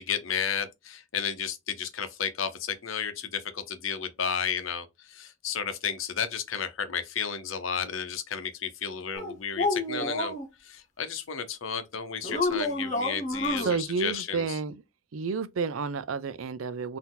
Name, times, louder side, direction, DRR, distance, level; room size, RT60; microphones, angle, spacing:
voice 1, 0.0-10.3 10.6-14.6, left 7 dB, 75° left, 0.8 m, -33 dB
sound 1, 9.1-10.4 12.2-13.7, left 2 dB, 35° left, 1.0 m, -29 dB
voice 2, 13.6-14.7 15.1-17.0, right 5 dB, 80° right, 0.5 m, -30 dB
4.2 x 2.7 x 3.9 m
head